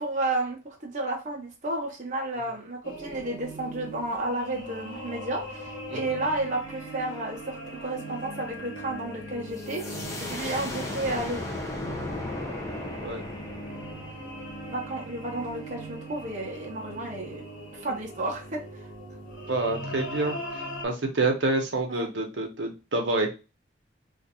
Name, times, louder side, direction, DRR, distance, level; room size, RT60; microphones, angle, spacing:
voice 1, 0.0-11.4 14.7-17.4 17.7-18.9 19.9-20.0 21.9-22.1, right 2 dB, 40° right, 0 dB, 0.7 m, -32 dB
sound 1, 2.8-20.9, right 1 dB, 80° left, 1.2 m, -40 dB
sound 2, 9.6-15.1, left 2 dB, 15° left, 0.6 m, -36 dB
voice 2, 19.5-23.3, right 2 dB, 75° right, 2 dB, 0.8 m, -28 dB
2.5 x 2.5 x 4.1 m, 0.29 s
head